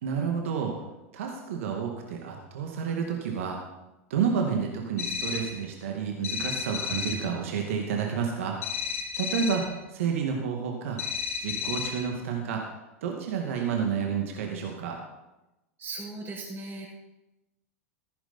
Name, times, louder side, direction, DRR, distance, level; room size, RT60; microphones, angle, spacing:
voice 1, 0.0-0.7 1.1-3.6 4.1-8.6 9.2-11.0 11.4-12.6 13.0-15.0, right 6 dB, 70° right, 2 dB, 2.3 m, -30 dB
sound 1, 5.0-5.6 6.2-7.3 8.6-9.7 11.0-12.1, left 6 dB, 80° left, 2.8 m, -32 dB
voice 2, 15.8-16.9, right 3 dB, 30° right, -6 dB, 5.6 m, -37 dB
15.5 x 10.5 x 4.4 m, 0.98 s
hypercardioid pair, 90°, 8 cm